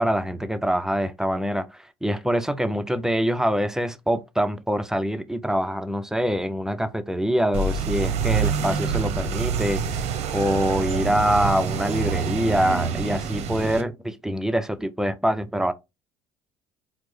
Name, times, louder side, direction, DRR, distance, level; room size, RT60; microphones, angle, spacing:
voice 1, 0.0-10.0 10.3-15.7, equal, 5° right, 0.4 m, -25 dB
sound 1, 7.5-13.8, right 6 dB, 50° right, 0.6 m, -26 dB
4.4 x 2.0 x 3.2 m
figure-of-eight pair, 60°, 15 cm